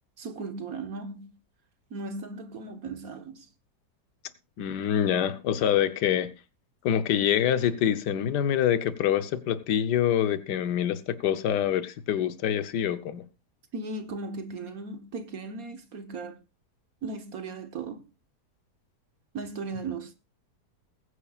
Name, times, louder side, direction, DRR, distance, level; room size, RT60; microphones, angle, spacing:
voice 1, 0.2-1.3 1.9-3.5 13.7-16.4 17.0-18.1 19.3-20.2, right 3 dB, 60° right, 1.6 m, -37 dB
voice 2, 4.6-6.3 6.8-13.2, left 10 dB, 85° left, 1.5 m, -25 dB
21.0 x 10.0 x 2.4 m
omnidirectional pair, 1.8 m